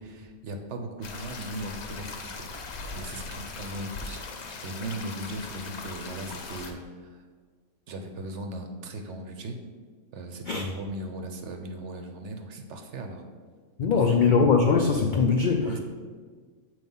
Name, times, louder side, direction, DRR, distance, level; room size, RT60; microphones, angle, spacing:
voice 1, 0.0-4.2 4.6-7.2 7.9-9.6 10.1-13.2 13.9-14.2 15.6-15.8, right 1 dB, 60° right, 5 dB, 0.9 m, -38 dB
sound 1, 1.0-6.7, left 4 dB, 60° left, 0.9 m, -40 dB
voice 2, 13.8-15.8, left 5 dB, 85° left, 2 dB, 0.4 m, -21 dB
7.1 x 3.1 x 5.4 m, 1.6 s
omnidirectional pair, 1.5 m